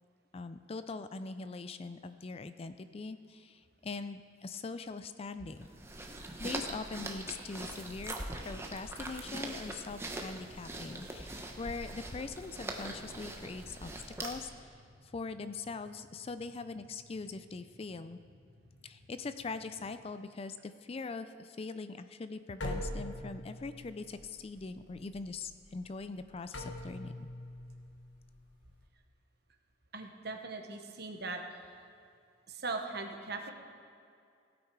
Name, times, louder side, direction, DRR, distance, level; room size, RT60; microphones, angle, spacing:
voice 1, 0.3-5.7 6.4-13.9 14.2-14.7 15.1-18.2 18.8-27.1, left 4 dB, 30° left, 11 dB, 0.4 m, -42 dB
sound 1, 5.6-14.6, right 2 dB, 15° right, 0.9 m, -42 dB
sound 2, 10.2-20.0, left 1 dB, 60° left, 2.5 m, -62 dB
sound 3, 22.6-28.9, left 1 dB, 75° left, 1.3 m, -43 dB
voice 2, 29.9-31.7 32.5-33.5, right 3 dB, 60° right, 4 dB, 1.2 m, -40 dB
16.5 x 8.6 x 4.7 m, 2.4 s
head